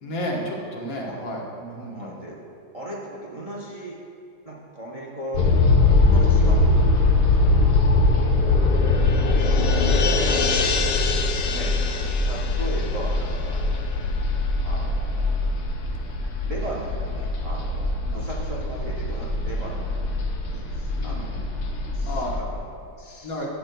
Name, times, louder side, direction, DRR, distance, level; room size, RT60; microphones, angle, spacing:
voice 1, 0.0-2.2 10.2-10.7 11.8-12.1 18.0-18.2 21.0-21.3 22.1-22.4 23.2-23.5, equal, 50° left, -2 dB, 1.5 m, -33 dB
voice 2, 1.9-2.4 2.7-4.0 4.4-7.6 9.6-9.9 10.6-10.8 11.5-11.8 12.3-13.8 14.6-15.5 16.4-20.0 20.5-21.5 21.9-23.4, right 1 dB, 45° right, -3 dB, 0.4 m, -37 dB
sound 1, 5.3-22.4, left 2 dB, 90° left, 1.7 m, -22 dB
sound 2, 7.4-14.4 14.8-14.9, left 4 dB, 70° left, 1.3 m, -28 dB
13.0 x 8.0 x 2.2 m, 2.6 s
omnidirectional pair, 2.1 m